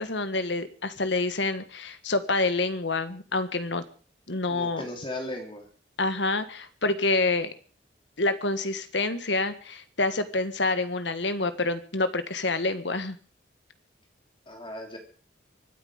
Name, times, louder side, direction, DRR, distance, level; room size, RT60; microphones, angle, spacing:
voice 1, 0.0-3.8 4.3-4.9 6.0-7.5 8.2-13.2, left 2 dB, 75° left, 11 dB, 1.6 m, -27 dB
voice 2, 4.5-5.7 14.5-15.0, left 1 dB, 25° left, 3 dB, 3.2 m, -36 dB
24.5 x 9.3 x 5.0 m, 0.39 s
head